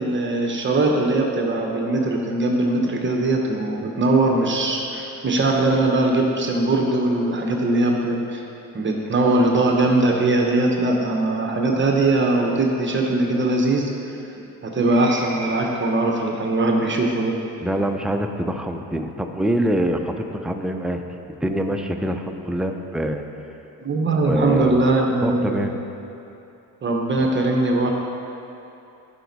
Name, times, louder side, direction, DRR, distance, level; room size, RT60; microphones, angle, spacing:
voice 1, 0.0-8.4 8.7-17.4 23.8-25.7 26.8-27.9, right 2 dB, 35° right, 1 dB, 0.9 m, -21 dB
voice 2, 17.6-23.2 24.1-24.8 25.2-25.7, right 1 dB, ahead, 4 dB, 0.4 m, -25 dB
11.5 x 5.1 x 4.0 m, 2.8 s
cardioid pair, 105°, 35 cm